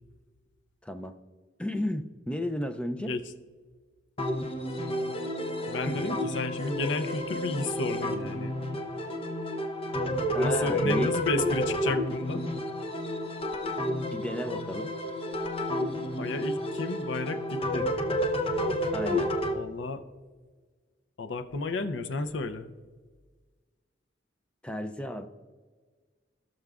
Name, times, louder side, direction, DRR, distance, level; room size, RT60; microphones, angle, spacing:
voice 1, 0.8-1.2 1.6-3.2 5.8-6.0 10.3-11.2 13.7-13.8 14.1-14.9 18.9-19.3 24.6-25.3, left 1 dB, 5° left, 9 dB, 0.4 m, -33 dB
sound 1, 4.2-19.5, equal, 30° left, 0.8 m, -30 dB
voice 2, 5.7-8.5 10.4-12.5 16.2-17.9 19.5-20.0 21.2-22.7, left 3 dB, 75° left, 9 dB, 0.6 m, -32 dB
18.0 x 6.5 x 2.4 m, 1.5 s
head